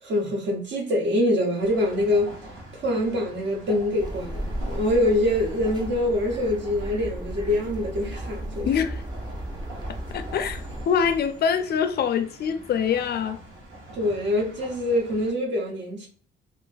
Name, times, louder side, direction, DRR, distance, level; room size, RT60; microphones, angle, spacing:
voice 1, 0.0-2.4 2.7-8.7 13.9-16.1, left 1 dB, 65° right, 1.0 m, -25 dB
sound 1, 1.6-15.3, right 1 dB, 90° right, 0.8 m, -44 dB
sound 2, 4.0-10.8, right 1 dB, 20° right, 0.5 m, -35 dB
voice 2, 8.6-9.0 10.1-13.4, left 7 dB, 55° left, 0.4 m, -24 dB
3.0 x 2.0 x 2.5 m
cardioid pair, 90°, 20 cm